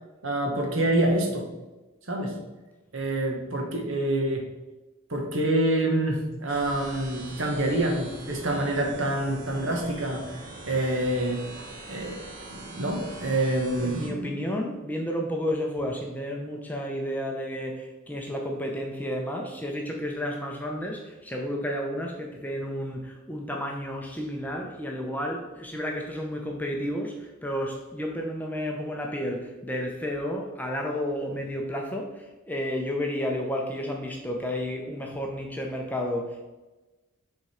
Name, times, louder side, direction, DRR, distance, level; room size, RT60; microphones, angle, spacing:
voice 1, 0.2-1.5 2.1-2.4 2.9-4.4 5.1-10.2 10.6-11.4 11.9-12.2 12.5-14.3, right 1 dB, 65° right, 2 dB, 1.2 m, -26 dB
sound 1, 6.5-14.1, right 2 dB, 40° right, 1.2 m, -43 dB
voice 2, 13.8-36.5, equal, 10° left, 0 dB, 0.6 m, -31 dB
6.4 x 3.7 x 4.3 m, 1.1 s
head